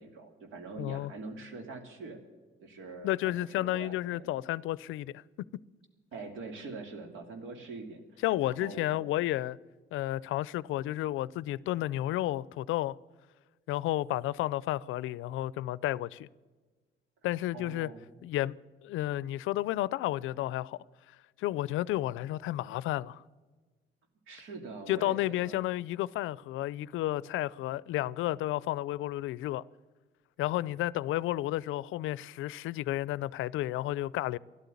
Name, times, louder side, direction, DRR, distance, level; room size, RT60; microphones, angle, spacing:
voice 1, 0.0-2.2 2.6-4.4 6.1-8.0 8.4-9.0 17.5-18.0 24.3-25.7, right 3 dB, 80° right, 2.6 m, -44 dB
voice 2, 0.8-1.1 3.0-5.1 8.2-9.6 9.9-13.0 13.7-16.3 17.2-17.9 18.2-18.6 18.8-20.8 21.4-23.2 24.9-29.6 30.4-34.4, left 15 dB, 85° left, 0.4 m, -32 dB
13.0 x 11.5 x 8.3 m
cardioid pair, 90°, 20 cm